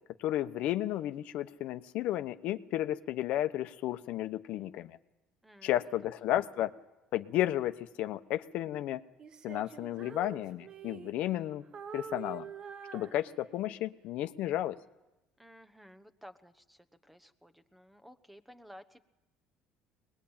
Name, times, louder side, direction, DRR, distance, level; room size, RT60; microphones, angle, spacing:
voice 1, 0.2-5.0 5.6-6.7 7.1-9.0 9.4-11.6 11.9-12.5 12.9-14.8, left 13 dB, 65° left, 10 dB, 1.0 m, -33 dB
voice 2, 5.4-5.8 15.4-19.0, equal, 5° right, 11 dB, 1.1 m, -55 dB
Female singing, 9.2-11.4 11.7-13.8, right 7 dB, 35° right, 0.9 m, -46 dB
23.5 x 20.0 x 8.9 m, 1.0 s
cardioid pair, 135°, 2 cm